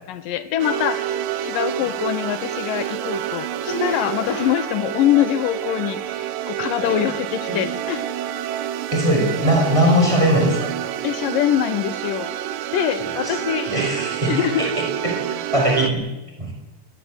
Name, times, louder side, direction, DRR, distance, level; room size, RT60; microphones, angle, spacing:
voice 1, 0.1-8.1 11.0-12.3 12.7-13.7 14.3-14.7, left 11 dB, 80° left, 12 dB, 2.6 m, -24 dB
sound 1, 0.6-15.9, right 11 dB, 85° right, 2.6 m, -28 dB
Cough, 1.5-1.6 1.8-6.3 6.5-10.3 10.6-11.0 11.3-11.7 12.2-12.8 13.1-14.8 15.1-15.4, right 1 dB, 25° left, 6.5 m, -35 dB
voice 2, 8.9-10.7 13.0-13.4 13.7-15.3 15.5-16.1 16.4-16.5, equal, 10° right, 0 dB, 5.6 m, -20 dB
20.0 x 20.0 x 7.9 m, 1.1 s
omnidirectional pair, 3.9 m